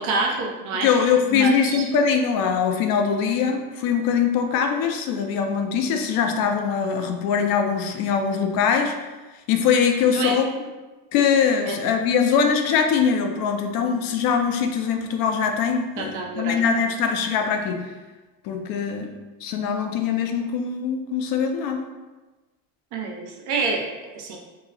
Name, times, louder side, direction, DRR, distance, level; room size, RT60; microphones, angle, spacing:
voice 1, 0.0-0.9 1.3-1.9 10.1-10.4 11.7-11.8 13.8-13.9 16.0-16.6 22.9-24.4, right 4 dB, 75° right, 1 dB, 0.8 m, -27 dB
voice 2, 0.8-9.0 9.5-10.4 11.1-17.8 18.4-19.1 19.4-21.8, left 6 dB, 55° left, 5 dB, 0.5 m, -22 dB
2.9 x 2.1 x 3.8 m, 1.2 s
supercardioid pair, 105°, 43 cm